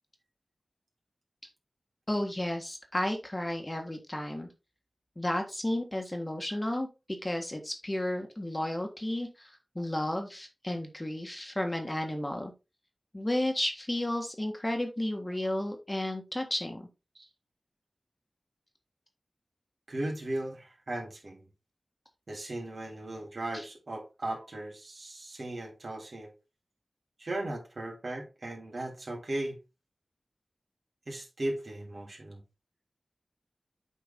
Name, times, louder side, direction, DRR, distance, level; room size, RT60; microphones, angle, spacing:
voice 1, 2.1-4.5 5.2-6.9 7.2-12.5 13.1-16.9, left 1 dB, 25° left, 1.6 m, -32 dB
voice 2, 19.9-21.4 22.3-26.3 27.2-29.6 31.1-32.4, right 1 dB, 65° right, 3.1 m, -37 dB
8.2 x 4.6 x 3.7 m
wide cardioid pair, 60°, 0 cm